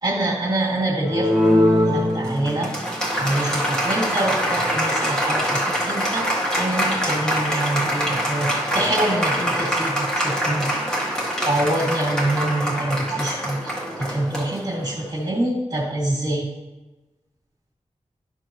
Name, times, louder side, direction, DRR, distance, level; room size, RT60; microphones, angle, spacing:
voice 1, 0.0-1.3 1.8-2.7 3.2-10.7 11.4-16.5, right 1 dB, 35° right, -3 dB, 2.4 m, -25 dB
Applause, 1.0-15.1, equal, 5° left, 2.0 m, -23 dB
13.0 x 4.4 x 3.1 m, 1.1 s
wide cardioid pair, 85°, 12 cm